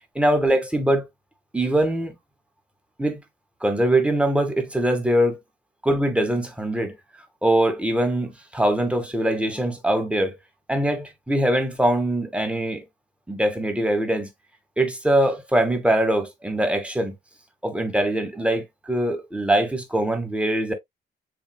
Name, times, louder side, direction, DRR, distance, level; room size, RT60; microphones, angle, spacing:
voice 1, 0.2-1.0 1.5-2.1 3.0-3.2 3.6-5.4 5.8-6.9 7.4-10.4 10.7-12.8 13.3-14.3 14.8-17.1 17.6-20.7, right 1 dB, 5° right, 1.6 m, -22 dB
7.4 x 2.7 x 2.2 m
cardioid pair, 90°, 20 cm